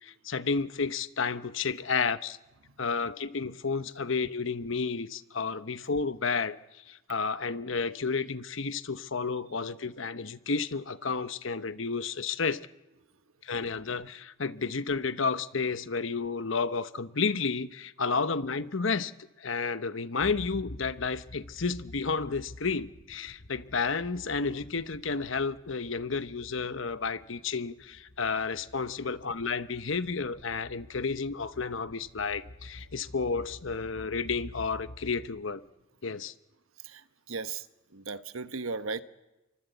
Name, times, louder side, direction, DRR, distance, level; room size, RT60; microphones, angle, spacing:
voice 1, 0.0-2.4 2.8-6.6 6.9-12.7 13.4-19.1 19.4-35.6 36.0-36.3, left 4 dB, 70° left, 1.0 m, -31 dB
sound 1, 20.2-35.8, left 1 dB, 45° left, 1.0 m, -49 dB
voice 2, 36.8-37.7 37.9-39.0, right 4 dB, 85° right, 1.2 m, -36 dB
28.5 x 24.0 x 8.2 m
head